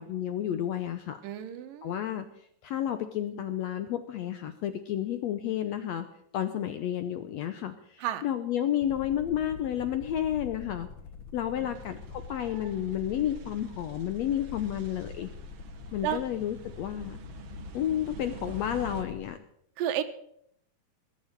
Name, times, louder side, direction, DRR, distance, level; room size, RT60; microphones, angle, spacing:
voice 1, 0.0-1.2 1.8-2.3 2.6-6.0 6.3-10.9 11.3-12.0 12.3-15.3 15.9-17.2 17.7-19.4, left 10 dB, 75° left, 10 dB, 1.6 m, -31 dB
voice 2, 1.2-2.0 8.0-8.2 11.6-11.8 16.0-16.2 19.8-20.0, right 11 dB, 80° right, 10 dB, 2.7 m, -32 dB
sound 1, 8.7-19.4, left 6 dB, 55° left, 1.5 m, -45 dB
sound 2, 11.7-19.0, right 8 dB, 55° right, 1.8 m, -48 dB
20.5 x 7.4 x 7.8 m, 0.71 s
omnidirectional pair, 3.9 m